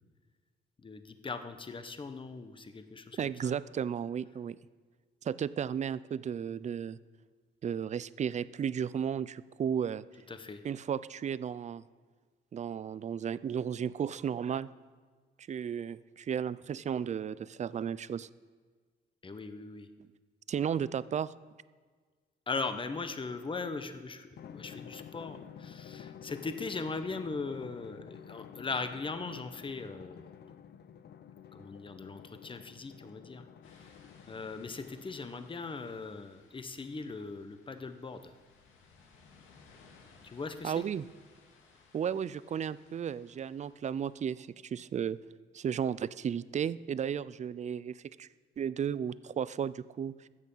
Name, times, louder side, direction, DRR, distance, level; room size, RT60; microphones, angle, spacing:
voice 1, 0.8-3.5 10.3-10.6 19.2-19.9 22.5-30.2 31.5-33.4 34.3-38.3 40.2-40.8, left 4 dB, 25° left, 9 dB, 1.0 m, -39 dB
voice 2, 3.2-4.6 5.2-7.0 7.6-10.0 10.6-11.8 12.5-14.7 15.5-18.3 20.5-21.3 40.6-41.1 41.9-45.2 45.5-48.3 48.6-50.3, right 8 dB, 35° right, 18 dB, 0.4 m, -34 dB
Drum, 24.4-35.4, left 8 dB, 55° left, 0.7 m, -50 dB
sound 1, 33.6-44.2, left 4 dB, 90° left, 2.0 m, -61 dB
13.5 x 8.1 x 5.6 m, 1.5 s
cardioid pair, 90°, 20 cm